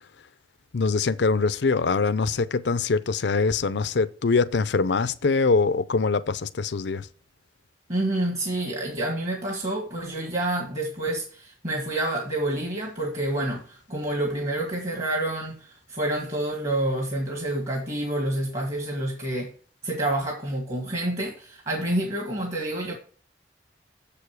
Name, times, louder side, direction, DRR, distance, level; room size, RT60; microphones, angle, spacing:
voice 1, 0.7-7.1, left 4 dB, 80° left, 0.5 m, -23 dB
voice 2, 7.9-19.5 19.8-23.0, right 1 dB, 40° right, 1.9 m, -28 dB
7.3 x 7.0 x 4.7 m
head